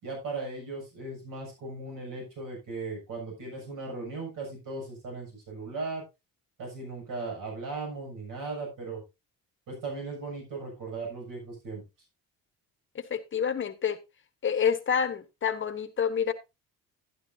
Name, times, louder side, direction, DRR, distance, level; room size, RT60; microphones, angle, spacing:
voice 1, 0.0-6.0 6.6-9.0 9.7-11.8, right 3 dB, 65° right, 7.1 m, -37 dB
voice 2, 12.9-14.0 14.4-16.3, left 7 dB, 35° left, 1.2 m, -28 dB
11.0 x 11.0 x 2.7 m
cardioid pair, 140°, 35 cm